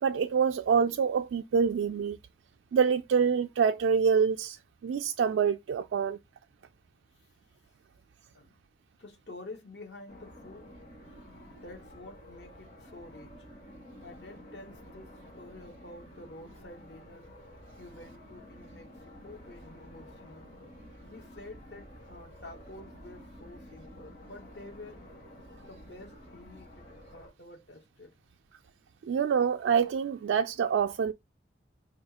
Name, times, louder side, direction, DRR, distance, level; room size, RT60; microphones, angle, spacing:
voice 1, 0.0-2.2 2.7-6.2 29.0-31.1, right 6 dB, 80° right, 0.3 m, -26 dB
voice 2, 9.0-10.8 11.6-13.6 14.0-17.4 17.8-20.6 21.1-25.1 25.7-28.1, left 2 dB, 65° left, 1.1 m, -49 dB
sound 1, 10.1-27.3, equal, 45° left, 2.0 m, -51 dB
5.3 x 2.4 x 2.8 m
head